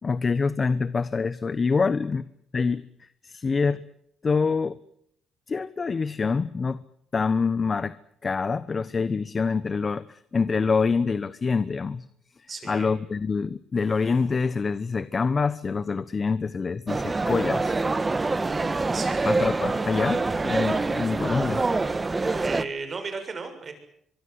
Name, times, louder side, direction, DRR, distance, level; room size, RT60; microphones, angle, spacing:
voice 1, 0.0-2.2 2.5-2.8 3.2-3.8 4.2-4.8 5.5-6.8 7.1-7.9 8.2-12.1 12.6-17.8 19.3-21.6, left 4 dB, 35° left, 16 dB, 1.0 m, -26 dB
voice 2, 12.5-12.9 18.9-19.4 22.4-23.7, right 4 dB, 40° right, 8 dB, 6.8 m, -35 dB
sound 1, 16.9-22.6, right 3 dB, 25° right, 1.5 m, -25 dB
24.5 x 23.0 x 8.0 m, 0.71 s
cardioid pair, 90°, 0 cm